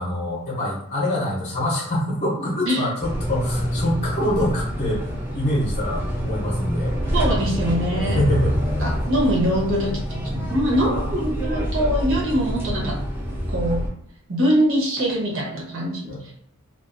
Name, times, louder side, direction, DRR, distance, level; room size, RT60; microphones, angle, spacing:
voice 1, 0.0-5.1 5.3-6.9 7.9-8.8 10.8-11.1 16.1-16.3, left 1 dB, 30° left, -5 dB, 0.6 m, -25 dB
sound 1, 3.0-13.9, equal, 10° right, 0.5 m, -26 dB
voice 2, 7.1-8.2 8.8-13.0 13.5-13.8 14.3-16.1, equal, 65° right, -2 dB, 0.8 m, -23 dB
2.3 x 2.3 x 2.4 m, 0.67 s
head